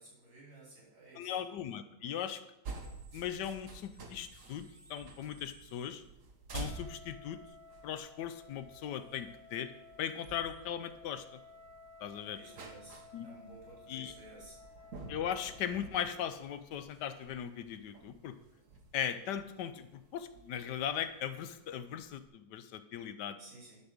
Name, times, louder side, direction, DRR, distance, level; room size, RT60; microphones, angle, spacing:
voice 1, 0.0-1.4 12.3-14.6 23.4-23.8, right 2 dB, 65° right, -6 dB, 4.8 m, -54 dB
voice 2, 1.1-2.4 3.1-6.0 6.5-7.4 7.8-9.7 10.0-11.4 12.0-12.4 13.1-13.3 13.9-14.1 15.1-18.3 18.9-23.4, left 9 dB, 75° left, 12 dB, 1.2 m, -38 dB
sound 1, 2.6-22.2, right 3 dB, 50° right, 1.3 m, -51 dB
Wind instrument woodwind instrument, 6.6-15.9, left 4 dB, 5° right, 1.9 m, -56 dB
11.5 x 4.3 x 6.4 m, 0.91 s
omnidirectional pair, 1.9 m